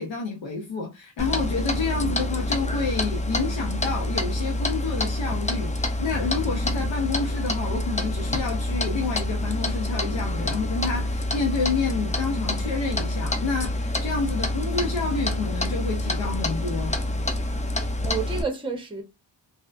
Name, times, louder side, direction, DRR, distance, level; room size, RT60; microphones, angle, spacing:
voice 1, 0.0-17.0, left 4 dB, 85° left, 0.8 m, -29 dB
Clock, 1.2-18.4, left 1 dB, 15° left, 0.5 m, -27 dB
voice 2, 17.7-19.0, right 5 dB, 10° right, 0.9 m, -31 dB
3.2 x 2.7 x 2.4 m
cardioid pair, 70°, 44 cm